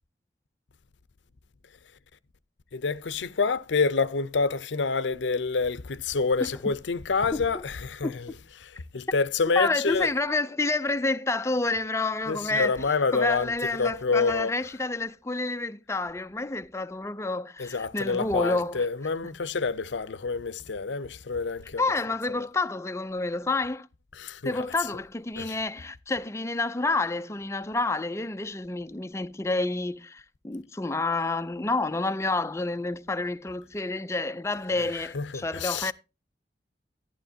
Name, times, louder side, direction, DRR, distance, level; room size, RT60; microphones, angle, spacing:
voice 1, 2.7-8.3 8.6-10.1 12.3-13.5 13.8-14.6 17.6-21.8 24.1-24.7 25.4-25.6 34.8-35.9, left 4 dB, 85° left, 0.6 m, -27 dB
voice 2, 9.6-18.9 19.2-19.3 21.8-23.9 24.4-35.9, left 3 dB, 15° left, 0.4 m, -29 dB
11.5 x 11.5 x 2.8 m
head